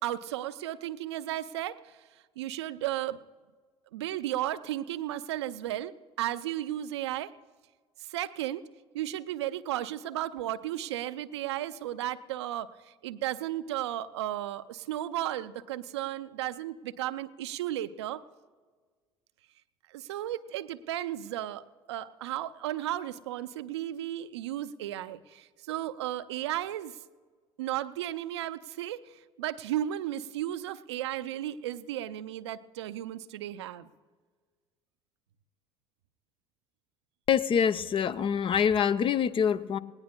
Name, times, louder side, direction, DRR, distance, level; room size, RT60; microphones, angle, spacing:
voice 1, 0.0-2.0 2.4-3.2 3.9-7.3 8.1-8.6 8.9-18.2 19.9-27.0 27.6-33.9, right 13 dB, 80° right, 13 dB, 0.5 m, -34 dB
voice 2, 37.3-39.8, left 7 dB, 40° left, 14 dB, 0.6 m, -25 dB
19.5 x 18.5 x 2.2 m, 1.5 s
hypercardioid pair, 65°, 14 cm